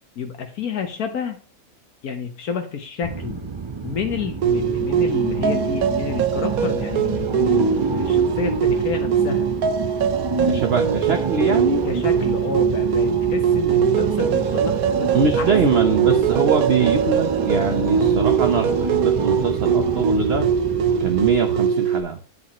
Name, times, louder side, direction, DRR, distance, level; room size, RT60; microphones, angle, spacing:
voice 1, 0.2-1.4 2.0-3.4 3.8-9.5 11.8-15.8, left 6 dB, 80° left, 5 dB, 1.6 m, -29 dB
sound 1, 3.0-21.4, right 4 dB, 30° right, 0.5 m, -28 dB
sound 2, 4.4-22.0, right 7 dB, 75° right, 1.3 m, -22 dB
voice 2, 10.4-11.9 15.1-20.5 21.0-22.2, right 5 dB, 50° right, 6 dB, 1.1 m, -22 dB
8.4 x 8.1 x 3.0 m, 0.37 s
omnidirectional pair, 1.6 m